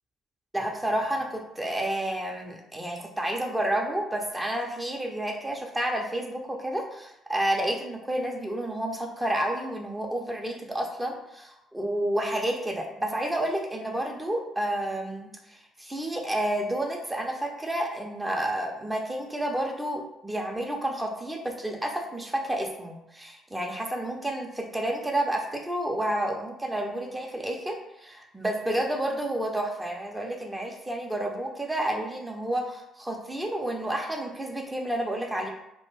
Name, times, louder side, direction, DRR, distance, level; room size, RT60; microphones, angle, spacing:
voice 1, 0.5-15.3 15.8-35.5, right 1 dB, 15° right, 1 dB, 0.5 m, -30 dB
2.5 x 2.1 x 3.1 m, 0.82 s
hypercardioid pair, 55°, 0 cm